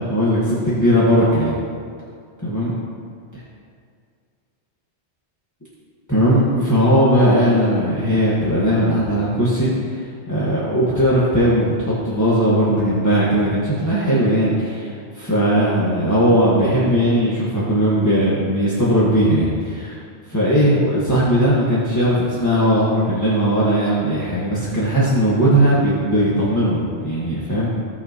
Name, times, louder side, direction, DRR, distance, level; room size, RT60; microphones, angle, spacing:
voice 1, 0.0-1.6 2.4-2.7 6.1-20.0 20.3-27.7, equal, 15° left, -9 dB, 1.6 m, -18 dB
16.5 x 5.8 x 3.0 m, 2.2 s
omnidirectional pair, 1.1 m